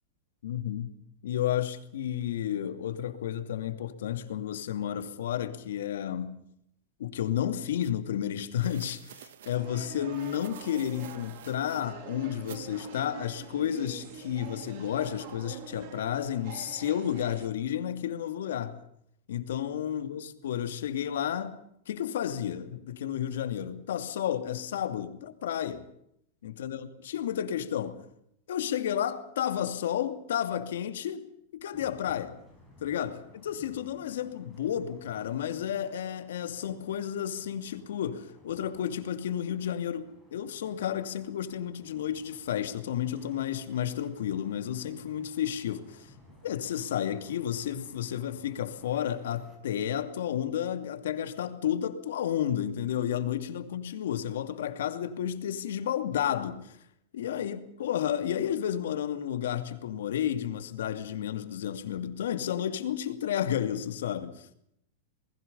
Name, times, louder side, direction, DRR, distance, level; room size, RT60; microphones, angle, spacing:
voice 1, 0.4-0.9 1.2-6.4 7.0-18.8 19.3-21.6 21.9-25.8 26.4-28.0 28.5-31.2 31.5-32.4 32.8-46.1 46.4-56.8 57.1-64.4, left 10 dB, 80° left, 2.7 m, -32 dB
sound 1, 7.8-7.9 8.6-9.6 10.1-11.9 12.5-12.6, right 10 dB, 75° right, 1.7 m, -50 dB
sound 2, 9.5-17.5, right 8 dB, 40° right, 2.9 m, -46 dB
sound 3, 31.7-49.6, left 1 dB, 5° right, 6.5 m, -58 dB
28.5 x 20.5 x 5.6 m
supercardioid pair, 175°, 0 cm